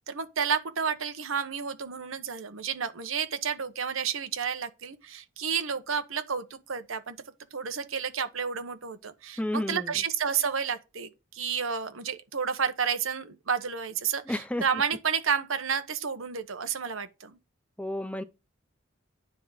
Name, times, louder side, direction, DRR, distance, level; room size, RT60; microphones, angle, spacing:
voice 1, 0.1-7.2 7.5-17.4, right 6 dB, 80° right, 1.1 m, -31 dB
voice 2, 9.4-9.9 14.3-14.6 17.8-18.2, left 1 dB, 5° left, 0.6 m, -31 dB
9.8 x 3.8 x 6.4 m
head